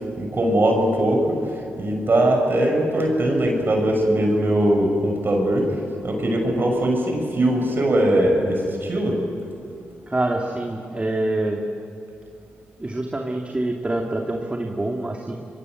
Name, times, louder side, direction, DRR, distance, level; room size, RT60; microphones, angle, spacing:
voice 1, 0.2-9.2, right 1 dB, 45° right, 1 dB, 6.5 m, -21 dB
voice 2, 10.1-11.6 12.8-15.3, right 2 dB, 25° right, 1 dB, 2.8 m, -26 dB
25.5 x 22.5 x 8.0 m, 2.5 s
supercardioid pair, 50°, 5 cm